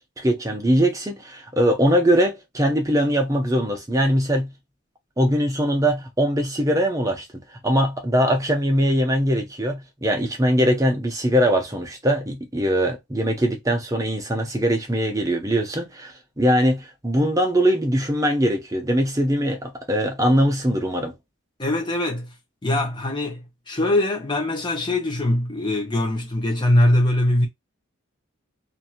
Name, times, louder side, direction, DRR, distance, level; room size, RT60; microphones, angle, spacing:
voice 1, 0.2-4.5 5.2-21.1, equal, 15° right, 0.7 m, -21 dB
voice 2, 21.6-22.3 22.6-23.4 23.7-27.5, left 1 dB, 20° left, 0.9 m, -22 dB
2.9 x 2.6 x 2.4 m
head